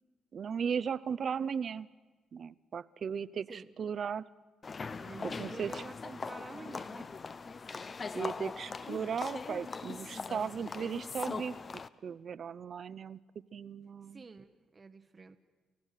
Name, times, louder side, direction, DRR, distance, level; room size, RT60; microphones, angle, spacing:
voice 1, 0.3-1.9 2.3-4.3 5.4-5.8 8.1-11.6 12.0-13.2 13.5-14.2, right 7 dB, 50° right, 17 dB, 0.6 m, -36 dB
voice 2, 3.5-4.0 5.0-7.1 7.8-8.5 14.1-15.4, right 4 dB, 30° right, 7 dB, 0.9 m, -49 dB
sound 1, 4.6-11.9, left 4 dB, 35° left, 0.7 m, -41 dB
29.5 x 15.5 x 6.6 m, 1.3 s
cardioid pair, 90°, 0 cm